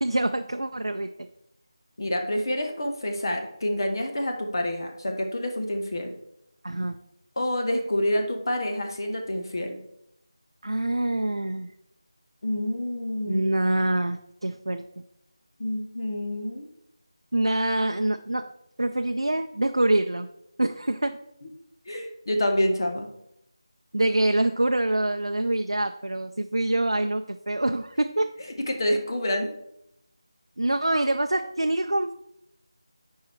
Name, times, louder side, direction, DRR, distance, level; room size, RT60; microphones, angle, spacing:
voice 1, 0.0-1.1 6.6-7.0 10.6-11.7 13.3-14.8 17.3-18.5 18.8-20.3 20.6-21.2 23.9-28.3 30.6-32.1, right 1 dB, 85° right, 6 dB, 0.5 m, -25 dB
voice 2, 2.0-6.1 7.4-9.8 12.4-13.5 15.6-16.7 21.4-21.5 21.9-23.1 28.7-29.5, left 1 dB, 50° left, 3 dB, 1.2 m, -27 dB
9.6 x 4.7 x 4.6 m, 0.76 s
figure-of-eight pair, 165°, 3 cm